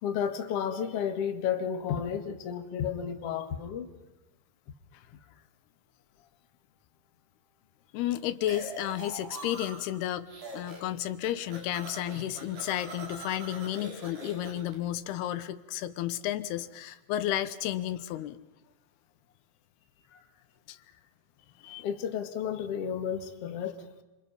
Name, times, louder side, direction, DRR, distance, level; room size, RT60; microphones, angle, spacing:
voice 1, 0.0-3.9 20.1-20.3 21.7-24.0, left 8 dB, 50° left, 6 dB, 2.3 m, -32 dB
voice 2, 7.9-10.3 10.5-18.4 20.7-20.8 21.6-21.8, left 12 dB, 85° left, 12 dB, 3.0 m, -32 dB
sound 1, 8.5-10.0 10.3-10.9 11.2-14.7, right 1 dB, 90° right, 7.6 m, -43 dB
28.0 x 27.0 x 5.5 m, 1.0 s
omnidirectional pair, 4.5 m